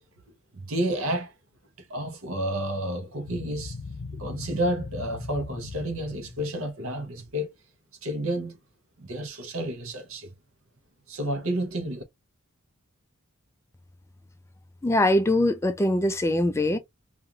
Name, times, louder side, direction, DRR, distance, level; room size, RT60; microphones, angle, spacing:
voice 1, 0.5-1.3 1.8-3.8 4.2-7.5 8.0-8.6 9.0-10.3 11.1-12.0, right 1 dB, 70° right, 0.8 m, -30 dB
sound 1, 3.3-6.6, left 4 dB, 65° left, 0.6 m, -39 dB
voice 2, 14.8-16.8, left 1 dB, 15° left, 0.3 m, -22 dB
2.5 x 2.4 x 2.8 m
head